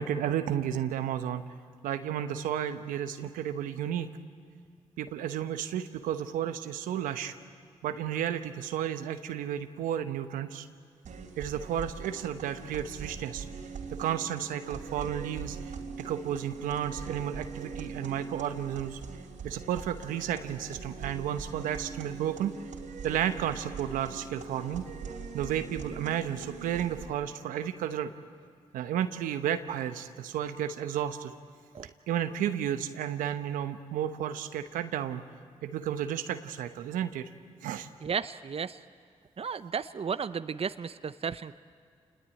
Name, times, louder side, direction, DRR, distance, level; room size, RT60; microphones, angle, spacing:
voice 1, 0.0-1.4 1.8-4.1 5.0-7.3 7.8-10.7 11.4-13.5 13.9-15.6 16.0-19.0 19.4-22.5 23.0-24.8 25.3-28.1 28.7-31.3 32.1-35.2 35.6-37.3 37.6-37.9, right 10 dB, 85° right, 9 dB, 1.0 m, -32 dB
sound 1, 11.0-27.1, right 5 dB, 70° right, 3.0 m, -42 dB
voice 2, 38.0-38.8 39.4-41.5, right 6 dB, 45° right, 13 dB, 0.7 m, -34 dB
27.5 x 20.5 x 9.1 m, 2.1 s
supercardioid pair, 45°, 14 cm